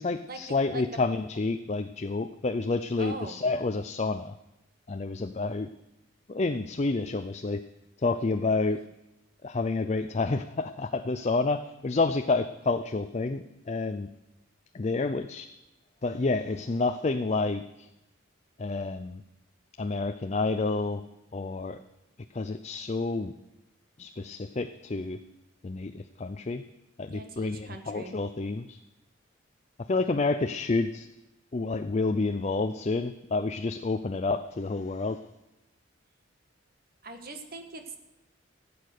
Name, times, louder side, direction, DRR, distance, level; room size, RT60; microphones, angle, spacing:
voice 1, 0.0-4.4 4.9-5.7 6.3-7.6 8.0-8.8 9.4-14.1 14.7-15.5 16.0-17.9 18.6-19.2 19.8-21.0 21.3-21.8 22.3-23.3 24.0-25.2 25.6-26.6 27.0-28.8 29.9-31.1 31.5-35.2, left 3 dB, 35° left, 9 dB, 0.5 m, -29 dB
voice 2, 3.0-3.4 27.1-28.2 37.0-38.0, right 2 dB, 50° right, 6 dB, 1.6 m, -41 dB
16.0 x 8.6 x 6.6 m, 0.94 s
head